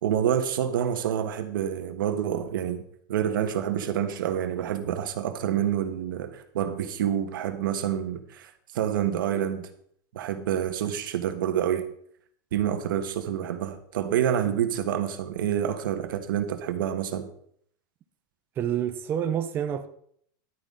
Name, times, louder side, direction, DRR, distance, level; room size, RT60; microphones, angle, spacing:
voice 1, 0.0-2.8 3.1-9.7 10.1-11.8 12.5-17.3, right 10 dB, 90° right, 1.4 m, -27 dB
voice 2, 18.6-19.9, right 9 dB, 20° right, 0.5 m, -28 dB
11.5 x 9.5 x 3.8 m
supercardioid pair, 170°, 11 cm